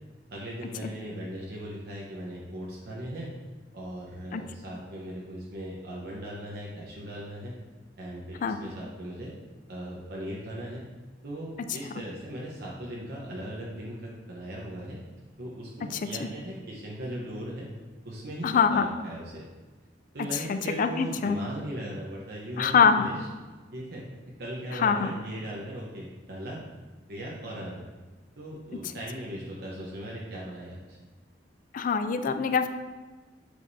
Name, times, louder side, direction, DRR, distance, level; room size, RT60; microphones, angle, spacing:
voice 1, 0.3-3.3 3.7-7.6 8.0-9.3 9.7-10.8 11.2-15.0 15.4-17.7 18.0-19.4 20.1-23.2 23.7-24.0 24.4-26.6 27.1-27.9 28.4-31.0, right 1 dB, 60° right, -4 dB, 0.9 m, -38 dB
voice 2, 18.4-18.8 20.5-21.4 22.6-23.1 24.7-25.1 31.7-32.7, left 6 dB, 50° left, 9 dB, 0.4 m, -24 dB
8.1 x 5.1 x 2.7 m, 1.3 s
head